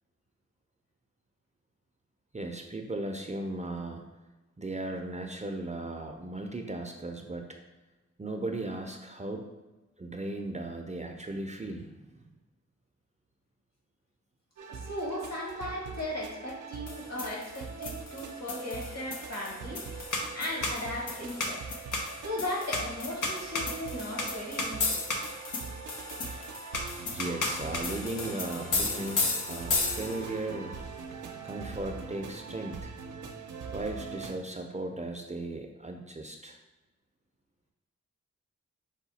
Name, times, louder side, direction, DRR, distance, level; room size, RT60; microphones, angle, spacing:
voice 1, 2.3-4.0 4.6-7.5 8.2-9.5 10.0-12.2 27.1-30.8 31.4-32.9 33.7-36.6, right 2 dB, 25° right, 3 dB, 0.5 m, -37 dB
sound 1, 14.6-34.3, right 5 dB, 80° right, 0.6 m, -42 dB
voice 2, 14.7-19.8 20.3-21.6 22.2-25.0, left 1 dB, 60° left, -2 dB, 1.5 m, -37 dB
sound 2, 16.9-30.4, left 3 dB, 90° left, 0.7 m, -34 dB
5.6 x 2.3 x 4.1 m, 1.1 s
cardioid pair, 50°, 30 cm